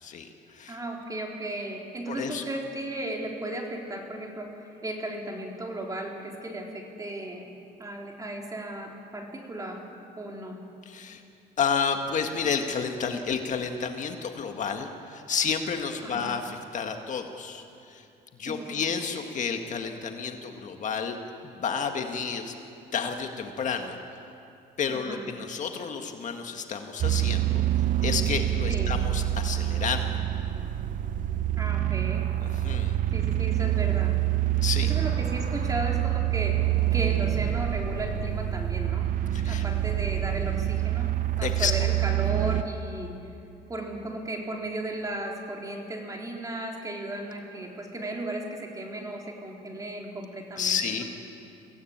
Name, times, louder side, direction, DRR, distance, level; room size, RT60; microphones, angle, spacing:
voice 1, 0.0-0.8 2.1-2.4 10.9-11.2 11.6-18.0 18.4-21.2 21.4-22.5 22.9-24.0 24.8-27.6 28.0-30.1 32.4-33.0 34.6-34.9 39.3-39.6 41.4-41.7 50.6-51.0, left 6 dB, 45° left, 5 dB, 1.8 m, -31 dB
voice 2, 0.7-7.5 7.8-9.8 10.2-10.6 16.0-16.3 18.5-18.8 24.9-25.3 28.7-28.9 31.6-32.3 33.1-34.2 34.8-39.1 39.4-41.1 41.4-43.1 43.7-51.0, right 1 dB, 20° right, 0 dB, 4.0 m, -35 dB
sound 1, 27.0-42.6, right 13 dB, 50° right, 0.8 m, -26 dB
23.5 x 17.0 x 8.8 m, 2.6 s
cardioid pair, 110°, 17 cm